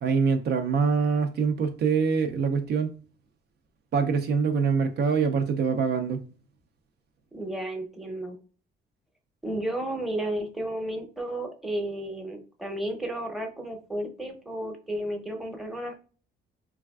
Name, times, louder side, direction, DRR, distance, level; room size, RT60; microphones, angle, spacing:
voice 1, 0.0-2.9 3.9-6.2, right 5 dB, 55° right, 0.4 m, -24 dB
voice 2, 7.3-8.4 9.4-16.0, right 1 dB, ahead, 0.7 m, -33 dB
3.2 x 2.3 x 2.2 m
cardioid pair, 90°, 20 cm